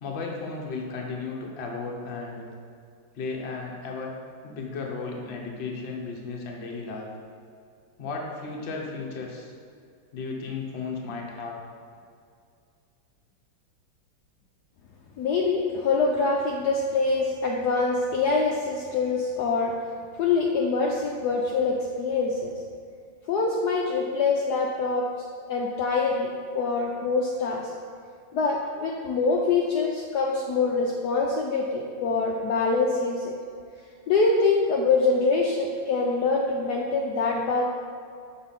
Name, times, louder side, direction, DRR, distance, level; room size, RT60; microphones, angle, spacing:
voice 1, 0.0-2.5 3.1-4.1 4.4-7.1 8.0-9.5 10.1-11.6, left 4 dB, 50° left, -1 dB, 0.8 m, -34 dB
voice 2, 15.2-19.7 20.2-22.5 23.3-25.1 25.5-27.7 28.3-33.3 34.1-37.6, left 4 dB, 80° left, -1 dB, 0.9 m, -24 dB
6.1 x 4.4 x 5.6 m, 2.3 s
omnidirectional pair, 2.4 m